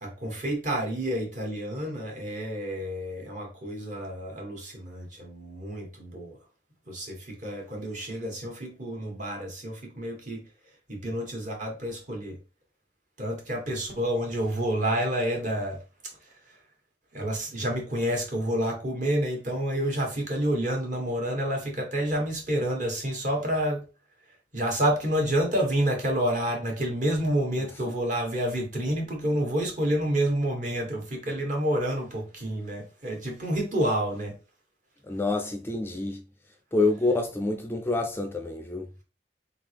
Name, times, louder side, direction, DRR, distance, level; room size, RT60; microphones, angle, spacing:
voice 1, 0.0-6.4 6.9-10.5 10.9-12.4 13.2-15.8 16.3-16.4 17.1-23.9 24.5-34.3, right 1 dB, 45° right, 1.4 m, -29 dB
voice 2, 35.1-36.2 36.7-38.8, left 2 dB, 15° left, 0.4 m, -27 dB
4.0 x 3.7 x 3.3 m
head